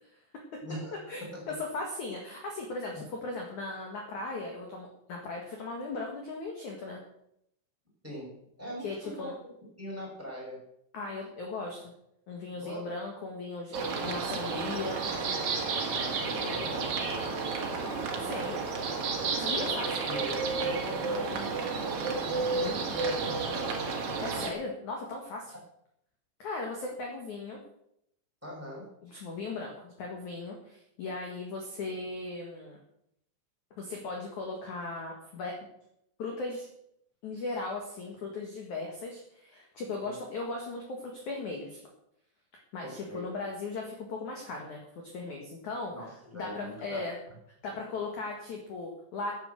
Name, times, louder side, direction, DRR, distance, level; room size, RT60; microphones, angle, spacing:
voice 1, 0.6-1.6 2.9-3.0 8.0-9.3 9.8-10.7 12.5-12.8 15.8-18.1 19.4-21.9 22.2-23.9 28.4-28.9 40.0-40.2 42.8-43.2 45.9-47.1, equal, 5° right, -3 dB, 5.1 m, -42 dB
voice 2, 1.6-7.0 8.8-9.3 10.9-11.9 12.3-15.0 18.3-18.6 19.4-19.9 24.2-25.5 26.4-27.6 29.0-32.8 33.8-35.6 36.2-36.7 37.2-41.8 42.7-44.8 45.1-45.9 46.3-47.2 47.6-49.3, left 3 dB, 50° left, 0 dB, 2.6 m, -37 dB
sound 1, 13.7-24.5, right 4 dB, 75° right, 1.4 m, -31 dB
10.5 x 9.7 x 7.8 m, 0.76 s
omnidirectional pair, 5.6 m